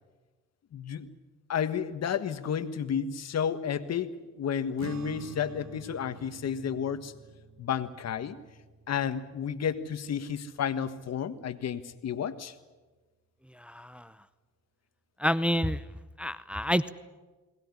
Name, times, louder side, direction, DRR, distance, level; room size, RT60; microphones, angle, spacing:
voice 1, 0.7-1.1 1.5-7.1 7.6-8.3 8.9-12.5, left 8 dB, 60° left, 12 dB, 1.6 m, -31 dB
sound 1, 4.8-11.4, right 7 dB, 65° right, 1.5 m, -49 dB
voice 2, 13.6-14.1 15.2-15.8 16.2-16.9, equal, 5° right, 13 dB, 0.7 m, -28 dB
21.0 x 19.0 x 9.8 m, 1.3 s
cardioid pair, 90°, 30 cm